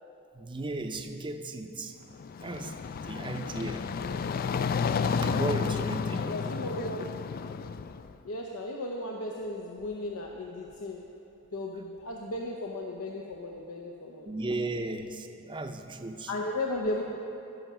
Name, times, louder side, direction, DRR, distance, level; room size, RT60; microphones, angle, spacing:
voice 1, 0.3-2.0 2.4-2.7 3.0-3.8 5.1-6.4 14.3-16.3, right 2 dB, 25° right, 6 dB, 0.6 m, -35 dB
sound 1, 2.1-8.1, left 6 dB, 45° left, 0.3 m, -31 dB
voice 2, 3.9-4.4 6.2-7.0 8.2-11.1 11.5-14.3 16.3-17.2, left 1 dB, 90° left, 0 dB, 0.8 m, -35 dB
16.0 x 5.6 x 6.2 m, 2.8 s
head